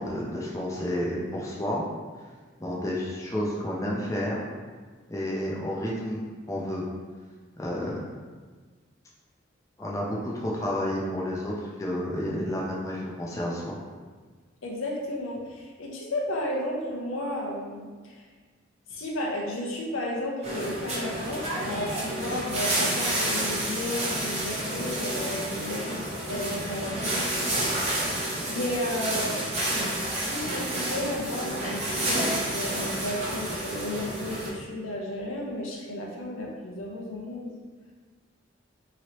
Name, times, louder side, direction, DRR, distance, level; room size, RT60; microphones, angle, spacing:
voice 1, 0.0-1.8 2.6-4.4 5.1-6.8 7.6-8.0 9.8-13.8, left 1 dB, 15° left, -4 dB, 0.4 m, -30 dB
voice 2, 14.6-18.2 18.9-27.7 28.5-29.4 30.1-37.5, left 1 dB, 90° left, -1 dB, 0.6 m, -33 dB
sound 1, 20.4-34.5, right 1 dB, 35° right, 0.7 m, -30 dB
3.0 x 2.8 x 2.9 m, 1.4 s
head